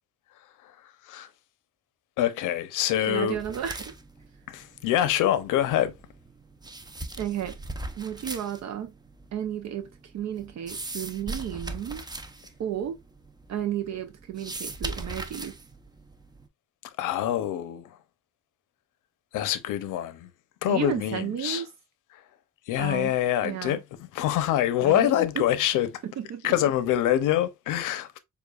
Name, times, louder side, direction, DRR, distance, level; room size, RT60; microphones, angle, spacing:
voice 1, 0.6-1.3 2.2-3.4 4.5-5.9 17.0-18.0 19.3-20.3 20.6-21.6 22.1-22.2 22.7-25.9 26.4-28.2, left 12 dB, 90° left, 0.7 m, -25 dB
voice 2, 3.1-3.9 7.2-7.5 7.9-8.9 9.3-9.9 10.1-12.0 12.6-13.0 13.5-15.6 20.7-21.7 22.8-23.1 23.4-23.8 24.8-25.4 26.0-26.5, right 10 dB, 60° right, 0.6 m, -32 dB
sound 1, 3.3-16.5, right 2 dB, 15° right, 0.6 m, -40 dB
6.8 x 2.3 x 2.3 m
cardioid pair, 90°, 30 cm